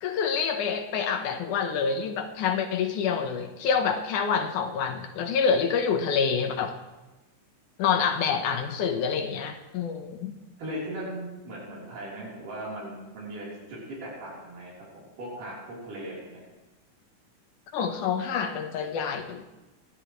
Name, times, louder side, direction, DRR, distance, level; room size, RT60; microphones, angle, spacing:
voice 1, 0.0-6.7 7.8-10.3 17.7-19.4, left 6 dB, 75° left, 5 dB, 2.4 m, -27 dB
voice 2, 10.6-16.4, right 1 dB, 85° right, -6 dB, 5.3 m, -38 dB
28.0 x 11.5 x 3.1 m, 1.1 s
omnidirectional pair, 3.6 m